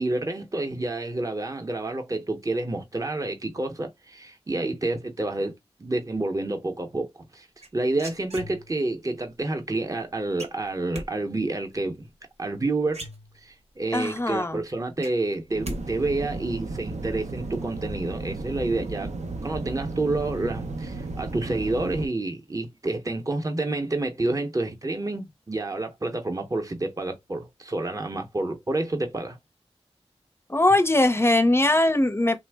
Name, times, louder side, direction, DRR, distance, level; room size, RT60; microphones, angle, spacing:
voice 1, 0.0-5.5 5.8-7.5 7.7-12.1 12.4-13.1 13.4-19.1 19.4-29.4, right 2 dB, 30° right, 0.7 m, -29 dB
sound 1, 7.6-8.9 10.4-11.1 12.5-12.6 12.9-13.7 14.1-14.2 14.5-15.8 16.1-16.5, right 1 dB, 70° right, 0.8 m, -39 dB
voice 2, 13.9-14.6 30.5-32.4, left 1 dB, 20° left, 0.5 m, -21 dB
sound 2, 15.5-22.1, right 3 dB, 85° right, 0.5 m, -34 dB
3.3 x 2.0 x 3.3 m
wide cardioid pair, 60°, 11 cm